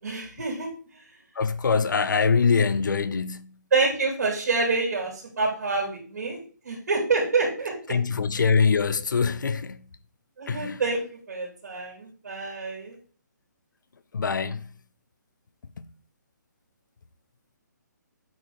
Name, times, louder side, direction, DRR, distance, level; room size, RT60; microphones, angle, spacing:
voice 1, 0.0-0.7 3.7-6.4 6.6-8.0 10.4-13.0, right 3 dB, 60° right, 3.2 m, -27 dB
voice 2, 1.4-3.5 7.9-9.8 10.5-10.8 14.1-14.6, left 5 dB, 80° left, 0.7 m, -23 dB
8.6 x 6.2 x 3.2 m
hypercardioid pair, 170°, 10 cm